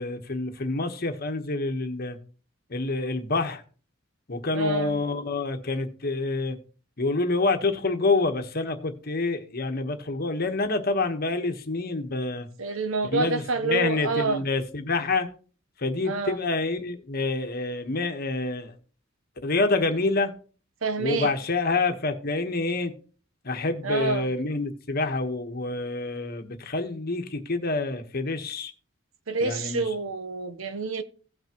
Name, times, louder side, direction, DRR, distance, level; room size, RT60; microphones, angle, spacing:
voice 1, 0.0-2.2 2.7-3.6 4.3-6.6 7.0-12.5 13.0-15.3 15.8-18.7 19.4-20.3 21.0-22.9 23.4-28.7 29.4-29.8, left 3 dB, 50° left, 1.2 m, -27 dB
voice 2, 4.5-5.0 12.6-14.4 16.0-16.4 20.8-21.3 23.8-24.3 29.3-31.0, right 3 dB, 85° right, 0.9 m, -28 dB
16.5 x 6.0 x 3.0 m
head